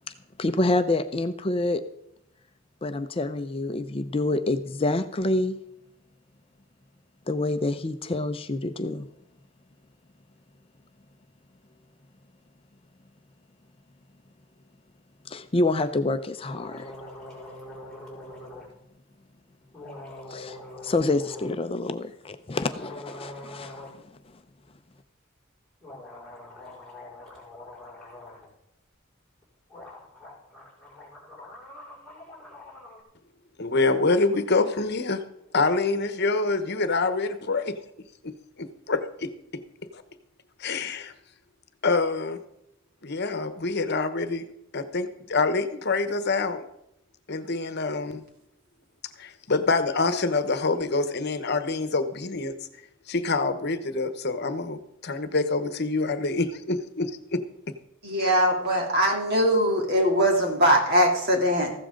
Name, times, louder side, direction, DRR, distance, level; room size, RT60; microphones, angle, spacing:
voice 1, 0.4-1.8 2.8-5.6 7.3-9.1 15.3-16.9 20.3-20.6 20.8-23.8, left 2 dB, 25° left, 9 dB, 0.5 m, -27 dB
sound 1, 16.5-18.7 19.7-21.5 22.3-24.0 24.3-24.4 25.8-28.5 29.4-29.5 29.7-33.0, left 2 dB, 5° left, 5.4 m, -43 dB
voice 2, 33.6-35.2 35.5-37.8 38.2-38.3 38.6-39.3 40.6-41.1 41.8-42.4 43.0-44.4 44.7-46.6 47.3-48.2 49.2-52.6 53.1-57.4, left 3 dB, 55° left, 10 dB, 1.1 m, -26 dB
voice 3, 58.0-61.7, equal, 50° right, 1 dB, 3.2 m, -21 dB
15.0 x 12.5 x 3.8 m, 0.81 s
head